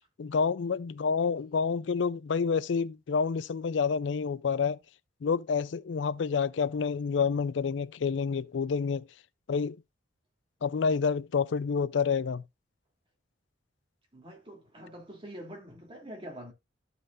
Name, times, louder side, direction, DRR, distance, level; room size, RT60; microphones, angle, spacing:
voice 1, 0.2-4.8 5.2-9.1 9.5-9.8 10.6-12.4, left 5 dB, 75° left, 0.4 m, -28 dB
voice 2, 14.1-16.5, equal, 30° right, 2.7 m, -45 dB
14.0 x 5.6 x 2.5 m
head